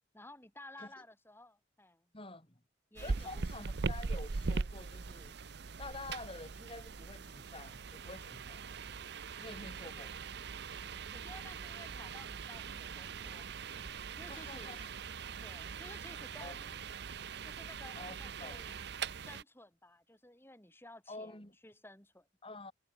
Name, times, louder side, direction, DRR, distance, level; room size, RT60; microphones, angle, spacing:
voice 1, 0.1-2.1 2.9-3.4 11.1-13.6 14.1-14.9 15.4-16.8 17.4-18.8 19.2-22.3, left 1 dB, 10° left, 4.4 m, -55 dB
voice 2, 2.1-2.6 3.0-5.3 5.8-8.6 9.4-10.1 14.3-14.9 16.4-16.6 16.9-17.0 17.9-18.6 21.1-21.5 22.4-22.7, left 2 dB, 30° left, 5.0 m, -48 dB
sound 1, 3.0-19.4, right 4 dB, 60° right, 0.7 m, -41 dB
head